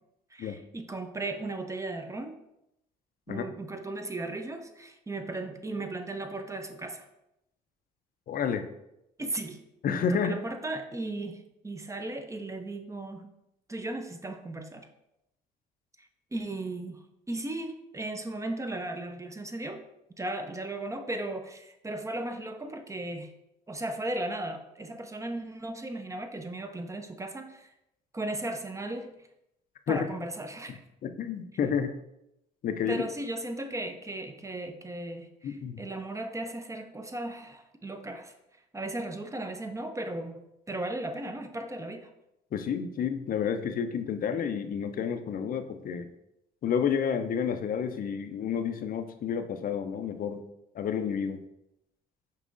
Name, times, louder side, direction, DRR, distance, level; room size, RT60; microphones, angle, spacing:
voice 1, 0.3-2.3 3.3-7.1 9.2-9.6 10.1-13.3 13.7-14.9 16.0-17.0 17.3-19.8 20.2-23.3 23.7-27.7 28.1-29.2 29.9-30.8 32.9-38.3 38.7-40.4 40.7-42.1, right 2 dB, 15° right, 7 dB, 0.5 m, -36 dB
voice 2, 8.3-8.6 9.8-10.4 29.9-30.0 31.0-31.9 32.6-33.0 35.4-35.8 42.5-46.1 46.6-50.4 50.7-51.4, left 7 dB, 45° left, 9 dB, 0.5 m, -30 dB
5.3 x 3.0 x 2.5 m, 0.84 s
hypercardioid pair, 60°, 20 cm